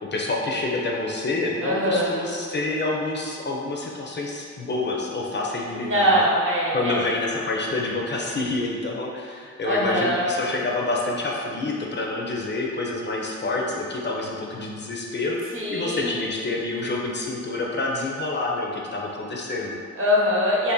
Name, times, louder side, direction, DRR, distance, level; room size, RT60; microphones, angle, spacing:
voice 1, 0.1-6.3 6.7-19.8, left 2 dB, 35° left, -2 dB, 0.5 m, -27 dB
voice 2, 1.6-2.1 5.7-7.0 9.6-10.3 15.5-16.2 19.9-20.7, equal, 40° right, -6 dB, 1.0 m, -22 dB
2.6 x 2.5 x 3.7 m, 2.1 s
cardioid pair, 70°, 31 cm